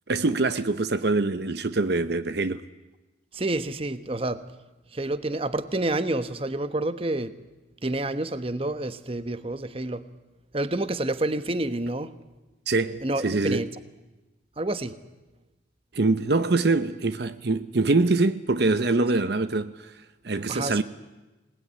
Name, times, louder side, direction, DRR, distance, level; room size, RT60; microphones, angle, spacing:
voice 1, 0.1-2.6 12.7-13.7 15.9-20.8, right 3 dB, 60° right, 0.8 m, -24 dB
voice 2, 3.3-4.4 4.9-7.3 7.8-10.0 10.5-12.1 13.0-13.7 14.6-14.9 20.5-20.8, right 2 dB, 30° right, 1.1 m, -28 dB
26.5 x 19.5 x 9.7 m
head